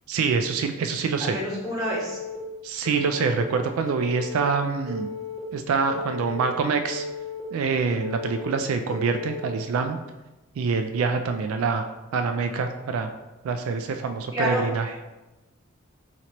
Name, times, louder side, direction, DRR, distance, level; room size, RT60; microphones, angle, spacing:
voice 1, 0.1-1.4 2.6-5.1 5.5-7.1 7.5-10.0 10.6-11.9 12.1-13.1 13.4-14.9, right 5 dB, 80° right, 6 dB, 0.3 m, -25 dB
voice 2, 1.2-2.2 14.3-14.6, equal, 15° right, -8 dB, 1.3 m, -27 dB
Telephone, 1.8-2.4 2.8-3.4 3.9-4.4 4.9-5.4 5.9-6.4 6.9-7.4 7.9-8.4 8.9-9.4, left 3 dB, 35° right, 1.2 m, -34 dB
5.0 x 2.9 x 2.9 m, 1.1 s
head